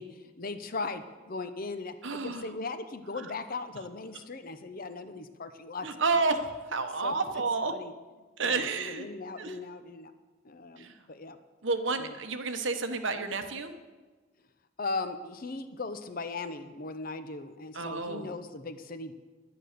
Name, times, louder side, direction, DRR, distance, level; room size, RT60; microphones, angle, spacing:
voice 1, 0.0-6.3 7.0-7.4 7.7-7.9 8.4-10.1 10.4-11.4 12.0-12.2 14.8-19.1, left 3 dB, 45° left, 10 dB, 0.8 m, -38 dB
voice 2, 2.0-2.4 5.8-6.4 6.7-7.7 8.4-9.1 9.4-9.5 10.8-10.9 11.6-13.7 17.7-18.3, right 4 dB, 70° right, 7 dB, 1.1 m, -30 dB
11.0 x 9.9 x 6.7 m, 1.3 s
head